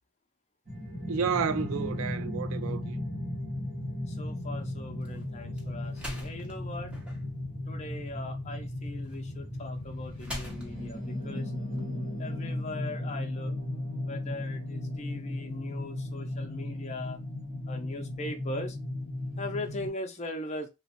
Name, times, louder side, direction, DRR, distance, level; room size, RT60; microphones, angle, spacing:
sound 1, 0.7-19.9, left 1 dB, 35° right, 0.9 m, -36 dB
voice 1, 1.1-3.1, right 6 dB, 70° right, 0.4 m, -31 dB
voice 2, 4.1-7.0 7.7-11.5 12.2-13.6 14.0-17.2 17.7-18.8 19.4-20.7, left 2 dB, 30° left, 0.5 m, -40 dB
sound 2, 4.2-12.4, equal, 5° right, 0.7 m, -47 dB
3.0 x 2.1 x 2.8 m
head